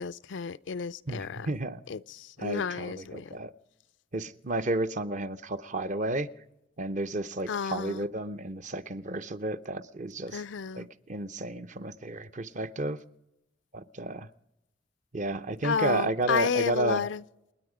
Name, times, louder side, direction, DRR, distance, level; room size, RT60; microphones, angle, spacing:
voice 1, 0.0-1.5 1.9-3.4 7.5-8.1 10.3-10.9 15.6-17.2, left 6 dB, 85° left, 0.5 m, -32 dB
voice 2, 1.1-1.8 2.4-3.5 4.1-6.3 6.8-10.4 10.7-13.0 13.7-14.3 15.1-17.0, right 2 dB, 40° right, 0.7 m, -32 dB
28.5 x 9.7 x 5.0 m
head